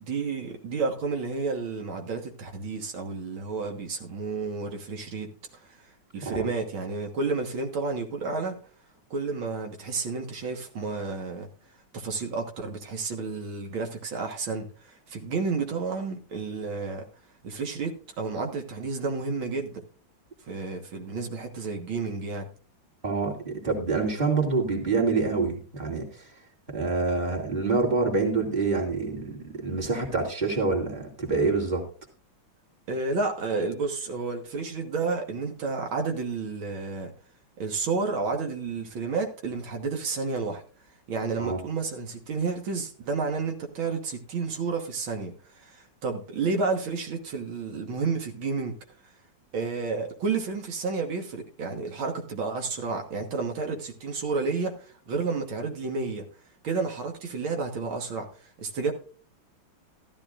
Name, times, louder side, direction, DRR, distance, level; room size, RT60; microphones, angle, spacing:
voice 1, 0.1-5.3 5.7-5.8 6.1-8.6 9.1-11.5 11.9-17.0 17.4-19.8 20.5-22.5 32.9-37.1 37.6-40.6 41.1-48.7 49.5-56.3 56.6-58.3 58.6-58.9, right 4 dB, 85° right, 2.2 m, -31 dB
voice 2, 23.0-26.3 26.7-31.9 41.4-41.6, right 3 dB, 20° right, 2.6 m, -26 dB
13.5 x 13.0 x 2.5 m
omnidirectional pair, 2.1 m